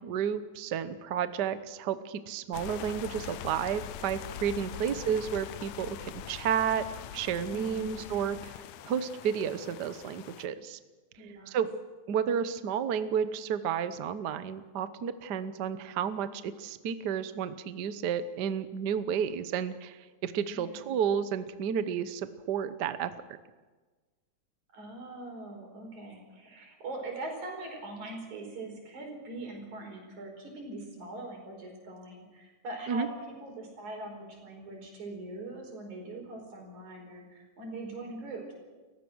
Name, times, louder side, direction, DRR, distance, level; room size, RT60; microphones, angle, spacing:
voice 1, 0.0-6.8 7.1-8.6 8.8-10.8 11.5-11.7 12.1-23.1 32.9-33.1, right 8 dB, 70° right, 12 dB, 1.0 m, -31 dB
sound 1, 2.5-10.5, left 11 dB, 80° left, 2.1 m, -43 dB
voice 2, 4.6-5.0 7.5-8.0 11.2-11.6 20.5-20.9 24.7-38.5, right 2 dB, 85° right, 2 dB, 6.1 m, -42 dB
29.0 x 15.5 x 6.3 m, 1.3 s
omnidirectional pair, 3.3 m